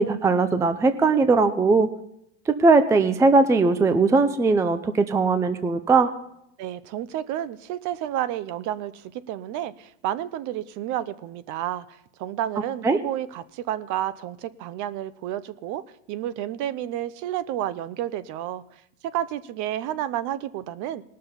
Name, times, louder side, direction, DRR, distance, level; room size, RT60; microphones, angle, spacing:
voice 1, 0.0-1.9 2.5-6.1 12.8-13.0, right 3 dB, 10° right, 11 dB, 0.4 m, -19 dB
voice 2, 6.6-11.9 12.2-15.8 16.1-18.6 19.1-21.0, right 12 dB, 50° right, 16 dB, 0.7 m, -30 dB
19.0 x 6.6 x 5.6 m, 0.78 s
supercardioid pair, 120°, 39 cm